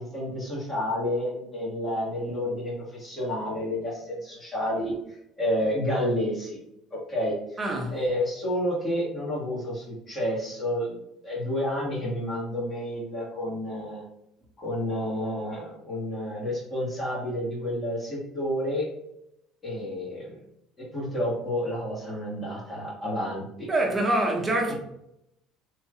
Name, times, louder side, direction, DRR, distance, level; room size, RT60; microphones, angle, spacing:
voice 1, 0.0-6.6 6.9-7.3 7.9-10.9 11.2-14.0 14.6-18.9 19.6-20.3 20.9-23.7 24.7-24.8, equal, 30° left, 1.4 m, -30 dB
voice 2, 7.6-8.0 23.7-24.7, right 1 dB, 25° right, 0.9 m, -25 dB
3.2 x 2.7 x 2.4 m
hypercardioid pair, 70°, 0 cm